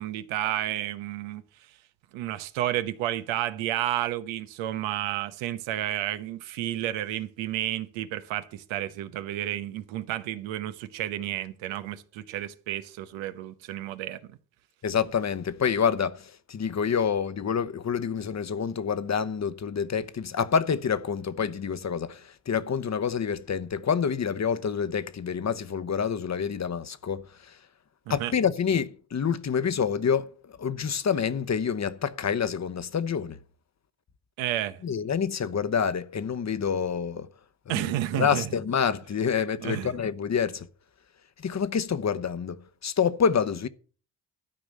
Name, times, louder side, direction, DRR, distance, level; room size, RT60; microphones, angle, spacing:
voice 1, 0.0-1.4 2.1-14.4 28.1-28.3 34.4-34.8 37.7-38.5 39.6-39.9, right 13 dB, 85° right, 1.0 m, -31 dB
voice 2, 14.8-27.5 28.1-33.4 34.8-37.3 37.7-37.9 38.1-40.7 41.4-43.7, left 7 dB, 35° left, 0.9 m, -27 dB
13.0 x 4.9 x 7.6 m
supercardioid pair, 65°, 45 cm